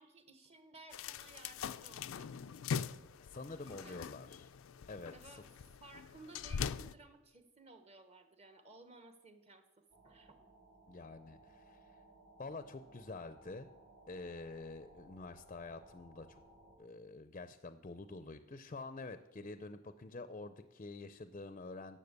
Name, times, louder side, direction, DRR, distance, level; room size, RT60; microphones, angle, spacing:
voice 1, 0.0-2.3 3.6-4.0 5.1-5.4 5.8-10.4, right 3 dB, 30° right, 8 dB, 1.2 m, -57 dB
sound 1, 0.9-6.9, left 6 dB, 90° left, 0.4 m, -42 dB
voice 2, 3.2-4.5 4.9-5.3 10.9-11.9 12.4-13.7 14.1-16.4 16.8-22.0, left 3 dB, 35° left, 11 dB, 0.5 m, -47 dB
sound 2, 9.9-16.8, right 1 dB, 65° right, 3.1 m, -61 dB
12.0 x 7.5 x 8.1 m, 1.1 s
head